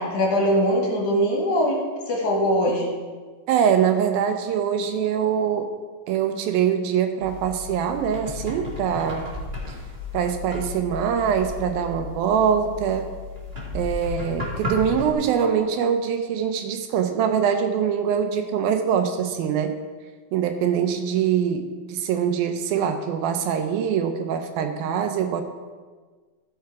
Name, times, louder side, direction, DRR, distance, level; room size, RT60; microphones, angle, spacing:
voice 1, 0.0-1.8 2.1-2.9, equal, 60° left, -2 dB, 3.0 m, -21 dB
voice 2, 3.5-5.7 6.1-9.2 10.1-13.1 13.7-19.8 20.3-25.4, right 8 dB, 80° right, 7 dB, 2.5 m, -23 dB
sound 1, 7.2-15.1, left 3 dB, 15° right, 2.0 m, -34 dB
14.5 x 5.8 x 4.7 m, 1.4 s
omnidirectional pair, 4.3 m